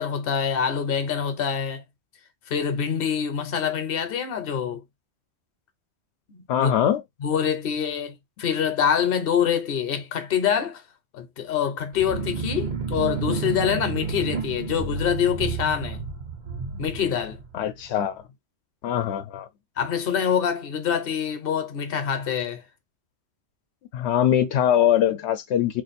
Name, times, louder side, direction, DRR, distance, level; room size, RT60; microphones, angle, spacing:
voice 1, 0.0-1.8 2.5-4.8 6.3-6.7 7.2-10.8 11.1-16.0 16.8-17.4 19.8-22.6, left 8 dB, 60° left, 0.9 m, -25 dB
voice 2, 6.5-7.0 17.5-18.2 18.8-19.5 23.9-25.8, left 10 dB, 90° left, 0.9 m, -22 dB
sound 1, 11.9-17.9, right 5 dB, 50° right, 0.8 m, -31 dB
2.5 x 2.5 x 4.0 m
omnidirectional pair, 1.1 m